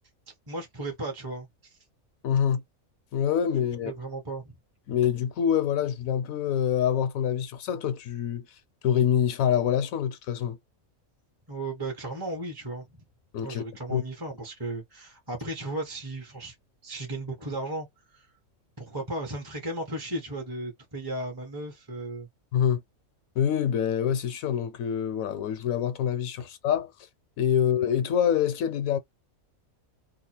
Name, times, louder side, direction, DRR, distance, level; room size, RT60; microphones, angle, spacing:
voice 1, 0.5-1.8 3.8-4.6 11.5-13.1 13.4-16.6 16.8-18.3 18.8-22.3, right 2 dB, 20° right, 0.9 m, -35 dB
voice 2, 2.2-2.6 3.1-3.9 4.9-8.4 8.8-10.6 13.3-13.6 13.9-14.0 22.5-22.8 23.4-26.9 27.4-29.0, left 9 dB, 75° left, 1.1 m, -25 dB
2.9 x 2.4 x 4.3 m
omnidirectional pair, 1.5 m